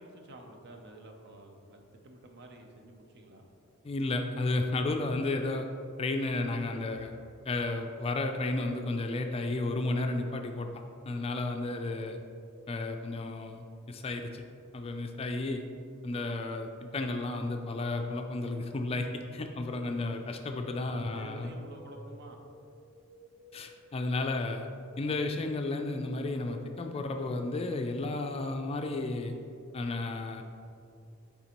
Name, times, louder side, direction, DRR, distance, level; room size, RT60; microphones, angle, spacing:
voice 1, 0.0-3.4 11.5-11.8 20.6-22.4, right 2 dB, 55° right, 3 dB, 0.6 m, -50 dB
voice 2, 3.8-5.7 6.0-7.1 7.5-12.2 12.7-14.4 14.7-15.6 16.0-21.5 23.5-24.7 25.0-29.3 29.7-30.4, left 2 dB, 30° left, 4 dB, 0.3 m, -33 dB
sound 1, 19.6-29.1, equal, 80° right, 1.1 m, -56 dB
9.1 x 3.6 x 3.0 m, 2.4 s
head